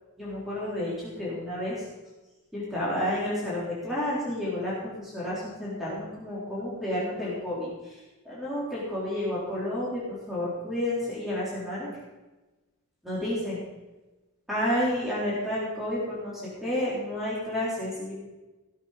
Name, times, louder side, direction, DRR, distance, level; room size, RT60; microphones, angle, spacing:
voice 1, 0.2-1.8 2.5-11.9 13.0-13.6 14.5-18.1, left 1 dB, ahead, -9 dB, 3.7 m, -31 dB
17.0 x 7.6 x 5.1 m, 1.1 s
head